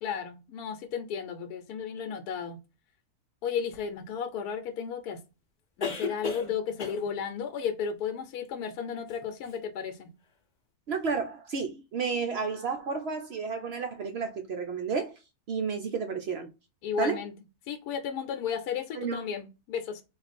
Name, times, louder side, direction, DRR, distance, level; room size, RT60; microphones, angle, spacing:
voice 1, 0.0-2.6 3.4-5.2 5.8-10.1 16.8-17.3 17.7-20.0, left 7 dB, 80° left, 1.1 m, -34 dB
sound 1, 3.7-3.8 5.8-6.5 6.8-7.1 9.1-9.2 9.4-9.6, left 5 dB, 40° left, 0.7 m, -34 dB
voice 2, 10.9-15.1 15.5-16.5 17.0-17.2 18.9-19.2, right 5 dB, 70° right, 0.6 m, -31 dB
4.0 x 2.5 x 4.1 m
omnidirectional pair, 1.6 m